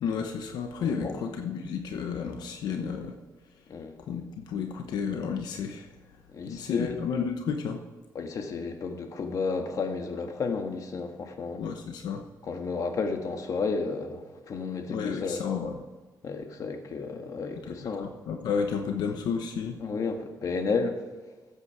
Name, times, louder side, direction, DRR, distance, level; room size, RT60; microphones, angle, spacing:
voice 1, 0.0-3.2 4.1-5.9 6.4-7.8 11.6-12.2 14.9-15.7 17.7-19.8, left 6 dB, 90° left, 4 dB, 1.0 m, -32 dB
voice 2, 0.8-1.1 3.7-4.0 6.3-7.0 8.1-11.6 12.4-15.4 16.2-18.1 19.8-21.0, left 4 dB, 55° left, 5 dB, 1.6 m, -32 dB
14.5 x 8.3 x 4.8 m, 1.3 s
cardioid pair, 110°, 7 cm